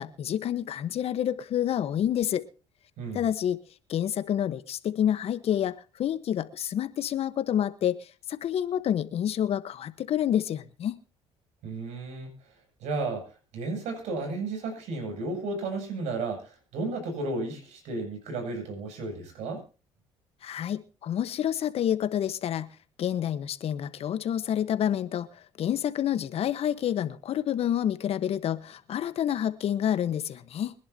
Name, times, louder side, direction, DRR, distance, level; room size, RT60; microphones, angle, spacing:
voice 1, 0.0-2.4 3.1-3.6 3.9-11.0 20.4-22.7 23.0-30.7, left 10 dB, 60° left, 13 dB, 1.2 m, -28 dB
voice 2, 11.6-12.3 12.8-19.6, right 3 dB, 75° right, 3 dB, 7.8 m, -33 dB
24.5 x 11.0 x 2.9 m, 0.34 s
supercardioid pair, 80°, 12 cm